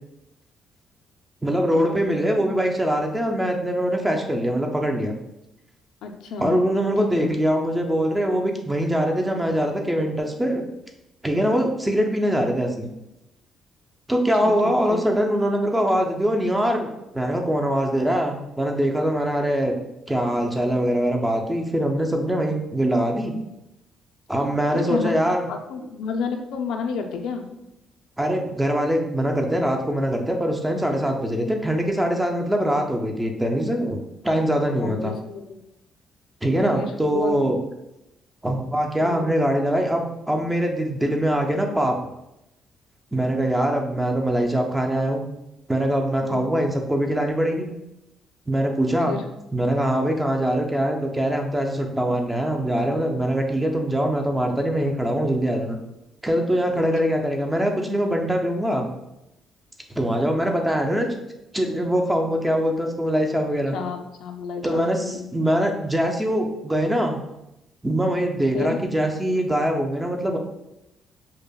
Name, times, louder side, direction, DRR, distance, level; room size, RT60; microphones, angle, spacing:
voice 1, 1.4-5.1 6.4-10.6 11.2-12.9 14.1-16.9 17.1-19.7 20.1-23.3 24.3-25.4 28.2-34.0 34.2-35.1 36.4-37.6 38.4-42.0 43.1-45.2 45.7-47.7 48.5-49.2 49.5-55.8 56.2-58.9 60.0-61.1 61.5-63.8 64.6-67.2 67.8-70.4, equal, 5° right, 2 dB, 0.4 m, -23 dB
voice 2, 6.0-6.6 7.0-7.3 14.4-15.0 24.7-25.2 25.5-27.4 34.6-35.6 36.7-37.4 39.0-39.3 46.2-46.6 49.1-49.3 56.7-56.8 63.7-65.3 68.5-68.8, left 6 dB, 90° left, 4 dB, 0.4 m, -31 dB
5.2 x 2.1 x 2.2 m, 0.89 s
cardioid pair, 160°, 0 cm